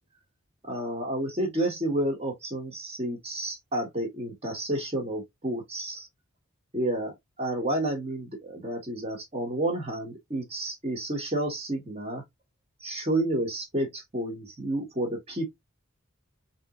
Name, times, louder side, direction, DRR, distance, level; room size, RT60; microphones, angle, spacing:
voice 1, 0.7-6.1 6.7-7.1 7.4-12.2 12.8-15.5, right 1 dB, 30° right, 1.3 m, -30 dB
3.8 x 2.9 x 2.4 m
head